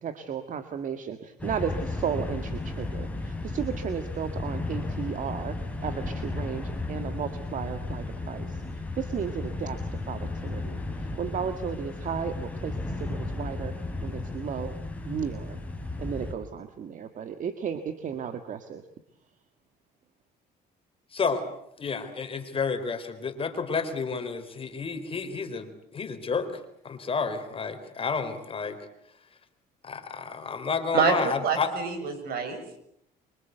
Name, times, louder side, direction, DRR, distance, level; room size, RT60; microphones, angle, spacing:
voice 1, 0.0-8.5 9.0-9.8 10.1-10.8 11.2-12.8 13.0-13.7 14.0-14.7 15.1-15.6 16.0-18.8, right 7 dB, 50° right, 9 dB, 1.9 m, -34 dB
sound 1, 1.4-16.3, left 2 dB, 10° left, 4.6 m, -34 dB
voice 2, 21.1-21.4 21.8-28.8 29.8-31.7, left 5 dB, 35° left, 8 dB, 4.1 m, -30 dB
voice 3, 31.4-32.8, right 6 dB, 65° right, 7 dB, 7.3 m, -26 dB
26.0 x 25.0 x 8.1 m, 0.74 s
cardioid pair, 110°, 17 cm